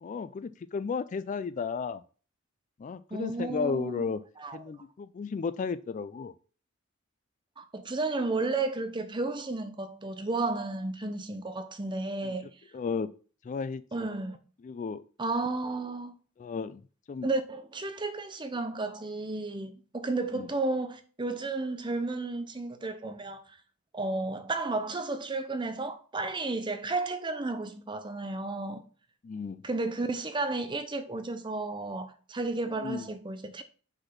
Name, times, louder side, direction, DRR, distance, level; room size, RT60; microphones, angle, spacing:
voice 1, 0.0-2.0 2.8-4.2 4.5-6.3 12.2-12.3 12.7-13.1 13.4-13.8 14.6-15.0 16.4-16.8 17.1-17.3 20.3-20.5 29.2-29.6 32.8-33.1, left 5 dB, 40° left, 0.3 m, -33 dB
voice 2, 3.1-4.0 4.4-4.6 7.6-12.5 13.9-14.4 15.2-16.1 17.2-23.4 23.9-28.8 29.6-33.6, right 3 dB, 25° right, 0.7 m, -32 dB
5.3 x 4.1 x 5.7 m
head